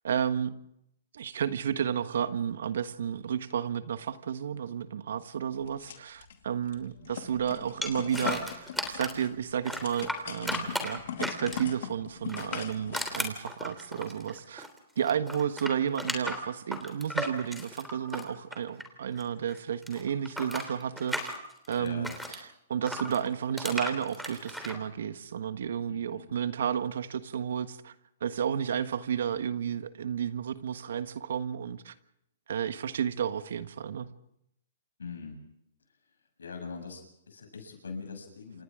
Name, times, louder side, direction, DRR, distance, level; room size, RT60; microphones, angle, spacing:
voice 1, 0.0-0.5 1.1-14.7 15.0-21.3 21.7-22.1 22.7-27.9 28.2-31.9 32.5-34.1, right 8 dB, 70° right, 11 dB, 1.4 m, -32 dB
sound 1, 5.6-6.4 6.7-13.2, left 8 dB, 65° left, 2.7 m, -40 dB
sound 2, 7.8-9.3 9.6-11.8 12.2-14.8 15.0-19.2 19.5-22.4 22.9-24.8, equal, ahead, 3.3 m, -35 dB
voice 2, 21.8-22.2 25.9-26.3 35.0-35.4 36.4-38.6, left 5 dB, 85° left, 4 dB, 7.2 m, -42 dB
28.5 x 26.0 x 3.8 m, 0.74 s
hypercardioid pair, 130°, 0 cm